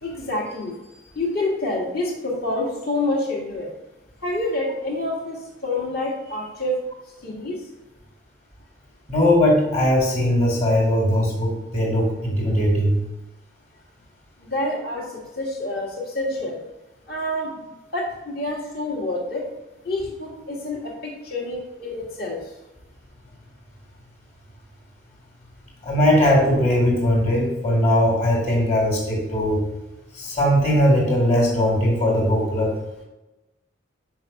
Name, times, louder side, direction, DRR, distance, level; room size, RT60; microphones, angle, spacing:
voice 1, 0.0-0.8 1.2-3.7 4.2-6.7 7.2-7.6 14.4-16.6 17.1-17.6 17.9-19.4 19.8-22.4, left 2 dB, 50° left, -2 dB, 1.8 m, -27 dB
voice 2, 9.1-13.0 25.8-29.6 30.1-32.7, left 1 dB, 35° left, -1 dB, 2.0 m, -19 dB
6.1 x 4.7 x 5.4 m, 1.0 s
head